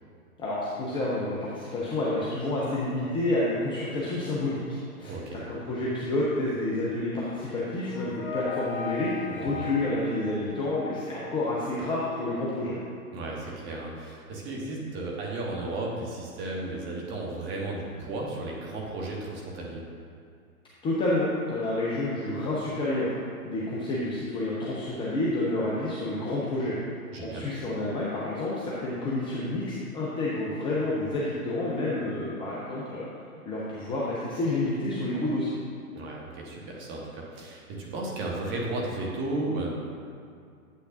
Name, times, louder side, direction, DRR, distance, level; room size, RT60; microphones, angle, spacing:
voice 1, 0.4-4.6 5.0-12.8 20.8-23.1 23.4-26.8 27.2-33.1 33.5-35.5, left 2 dB, 10° left, -6 dB, 0.6 m, -29 dB
voice 2, 5.0-5.5 9.5-9.7 13.1-19.8 27.1-27.5 35.9-39.7, right 2 dB, 25° right, -2 dB, 1.5 m, -34 dB
sound 1, 7.4-11.4, left 5 dB, 30° left, 1.1 m, -38 dB
8.5 x 8.2 x 2.6 m, 2.4 s
hypercardioid pair, 120°, 44 cm